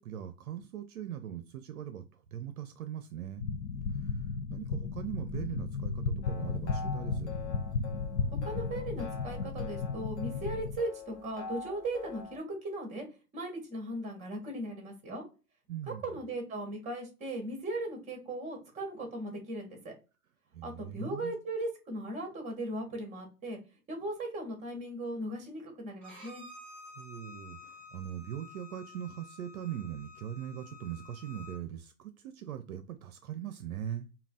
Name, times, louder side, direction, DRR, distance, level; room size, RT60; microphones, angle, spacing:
voice 1, 0.0-3.5 3.9-7.3 15.7-16.1 20.5-21.4 27.0-34.1, right 10 dB, 65° right, 0.6 m, -41 dB
sound 1, 3.4-10.8, left 4 dB, 90° left, 0.7 m, -34 dB
sound 2, 6.2-12.4, left 5 dB, 20° left, 0.7 m, -45 dB
voice 2, 8.4-13.0 13.3-15.2 15.9-19.9 20.6-23.6 23.9-26.4, right 1 dB, 15° right, 1.5 m, -38 dB
Bowed string instrument, 26.0-31.6, left 3 dB, 5° left, 1.7 m, -51 dB
5.2 x 2.4 x 2.4 m
hypercardioid pair, 120°, 46 cm